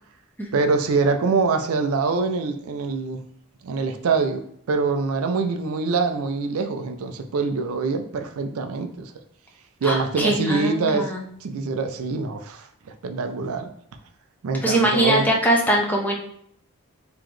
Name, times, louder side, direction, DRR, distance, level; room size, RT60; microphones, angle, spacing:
voice 1, 0.5-3.2 3.6-4.4 4.7-9.1 9.8-13.7 14.4-15.3, right 4 dB, 75° right, 6 dB, 0.4 m, -24 dB
voice 2, 9.8-11.2 14.6-16.1, right 1 dB, 10° left, -2 dB, 0.7 m, -22 dB
3.9 x 3.0 x 3.1 m, 0.65 s
head